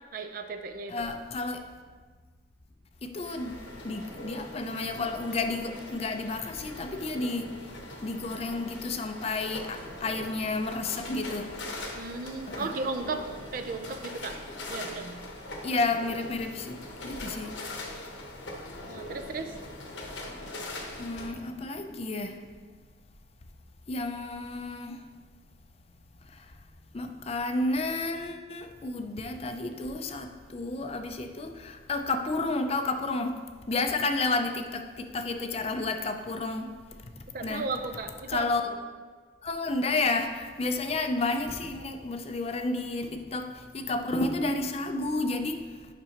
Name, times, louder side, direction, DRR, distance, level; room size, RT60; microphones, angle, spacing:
voice 1, 0.1-1.1 11.9-13.2 13.5-14.4 14.7-15.2 18.9-19.5 37.3-38.7, right 4 dB, 50° right, 6 dB, 0.5 m, -35 dB
voice 2, 0.9-1.7 3.0-3.6 3.8-7.5 8.0-11.5 12.5-12.7 15.6-17.5 20.3-20.4 21.0-22.4 23.9-25.1 26.9-33.4 33.7-36.7 37.4-37.6 38.3-38.6 39.4-45.8, left 3 dB, 35° left, 6 dB, 0.5 m, -31 dB
sound 1, 3.2-21.3, left 1 dB, 80° left, 1.1 m, -41 dB
9.5 x 6.0 x 2.9 m, 1.5 s
head